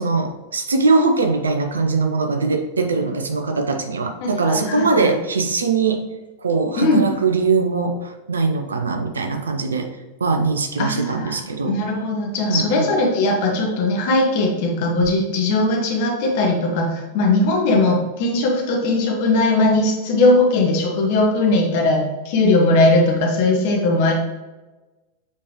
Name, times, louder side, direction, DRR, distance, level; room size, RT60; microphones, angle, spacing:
voice 1, 0.0-6.0 6.4-9.9 10.2-11.8 12.5-12.9, right 4 dB, 70° right, 5 dB, 0.8 m, -21 dB
voice 2, 4.2-5.1 6.8-7.0 10.8-11.3 11.6-24.1, left 2 dB, 50° left, 0 dB, 1.5 m, -19 dB
7.3 x 4.6 x 3.0 m, 1.1 s
figure-of-eight pair, 90°, 0 cm